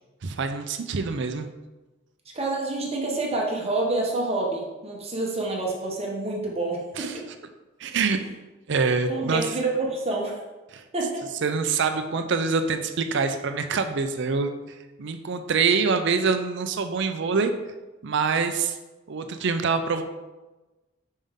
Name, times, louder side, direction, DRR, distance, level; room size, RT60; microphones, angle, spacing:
voice 1, 0.2-1.5 7.0-7.2 7.8-8.2 8.7-9.6 10.7-10.8 11.4-14.5 15.0-17.5 18.0-18.8 19.1-20.0, right 5 dB, 65° right, 8 dB, 0.5 m, -25 dB
voice 2, 2.3-7.2 9.1-10.4 10.9-11.3, right 2 dB, 30° right, -1 dB, 1.0 m, -28 dB
5.4 x 5.3 x 3.6 m, 1.1 s
head